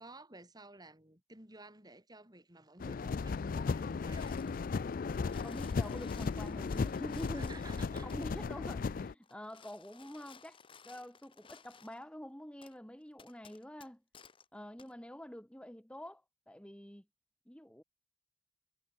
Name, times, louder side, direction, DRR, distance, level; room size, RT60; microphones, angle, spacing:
voice 1, 0.0-4.5 7.2-8.1, right 2 dB, 20° right, 5.4 m, -54 dB
sound 1, 2.8-9.1, left 4 dB, 50° left, 0.4 m, -36 dB
sound 2, 4.2-4.7 5.1-8.3 9.2-12.0 12.6-12.8 13.2-14.5 14.8-14.9, left 6 dB, 30° left, 1.1 m, -58 dB
voice 2, 5.4-10.6 10.8-14.0 14.5-17.0 17.5-17.8, equal, 5° left, 1.4 m, -47 dB
head